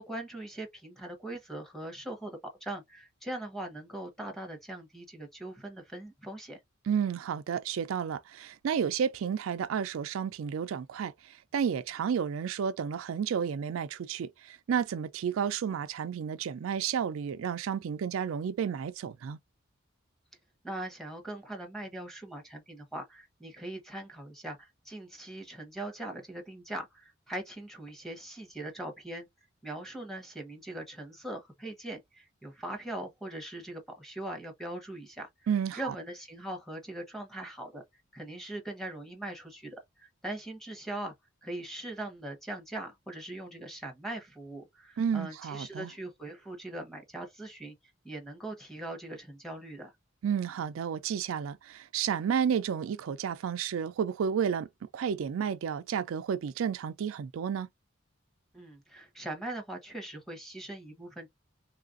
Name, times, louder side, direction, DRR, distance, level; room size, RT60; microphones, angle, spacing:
voice 1, 0.0-6.6 20.6-29.3 29.6-37.8 38.1-41.1 41.4-47.8 48.0-49.9 58.5-61.3, right 1 dB, ahead, 0.9 m, -41 dB
voice 2, 6.9-19.4 35.5-35.9 45.0-45.9 50.2-54.7 54.9-57.7, right 7 dB, 85° right, 0.4 m, -31 dB
3.2 x 2.4 x 2.5 m
head